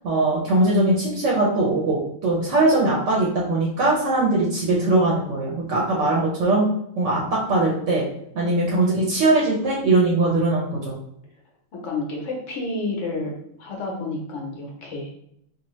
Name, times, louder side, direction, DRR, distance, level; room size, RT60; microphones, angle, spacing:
voice 1, 0.0-6.7 7.0-8.0 8.3-10.9, right 2 dB, 70° right, -4 dB, 1.0 m, -21 dB
voice 2, 11.7-13.3 13.6-15.1, left 2 dB, 70° left, -1 dB, 1.1 m, -30 dB
2.8 x 2.4 x 3.0 m, 0.73 s
omnidirectional pair, 1.4 m